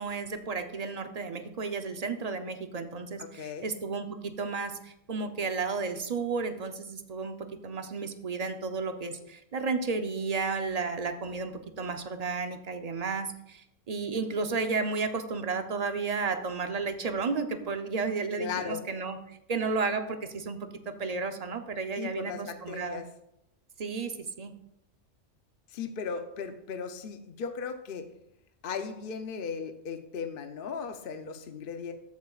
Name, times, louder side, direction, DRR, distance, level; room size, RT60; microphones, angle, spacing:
voice 1, 0.0-20.6 20.9-23.0 23.8-24.5, right 4 dB, 40° right, 7 dB, 0.6 m, -33 dB
voice 2, 3.2-3.7 18.4-18.8 22.0-23.0 25.7-28.1 28.6-31.9, left 6 dB, 55° left, 7 dB, 0.8 m, -37 dB
13.5 x 8.2 x 2.4 m, 0.81 s
omnidirectional pair, 1.3 m